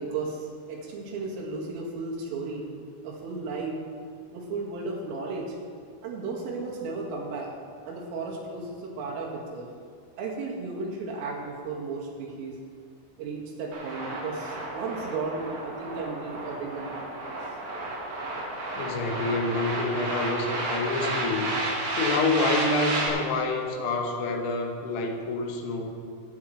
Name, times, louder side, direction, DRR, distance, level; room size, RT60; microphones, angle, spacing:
voice 1, 0.0-2.6 3.0-3.8 4.3-5.6 6.0-7.5 7.9-9.7 10.2-12.6 13.2-17.1, right 3 dB, 85° right, -3 dB, 4.4 m, -34 dB
sound 1, 13.7-23.1, right 2 dB, 55° right, 3.7 m, -32 dB
voice 2, 18.7-21.6 22.0-25.9, left 3 dB, 75° left, 2 dB, 3.3 m, -27 dB
19.5 x 9.1 x 3.2 m, 2.2 s
omnidirectional pair, 5.7 m